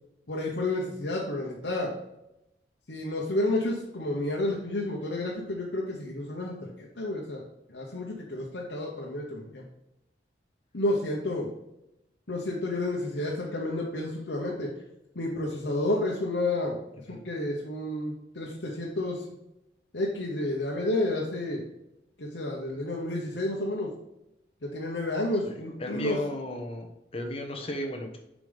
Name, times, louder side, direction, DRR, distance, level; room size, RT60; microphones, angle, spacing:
voice 1, 0.3-1.9 2.9-7.4 7.7-9.6 10.7-11.5 12.3-14.7 15.1-16.8 17.1-19.2 19.9-21.6 22.2-23.9 24.6-26.2, left 1 dB, 75° left, -2 dB, 1.1 m, -30 dB
voice 2, 25.8-28.2, left 1 dB, 35° left, 3 dB, 1.1 m, -35 dB
7.3 x 5.1 x 3.5 m, 0.87 s
head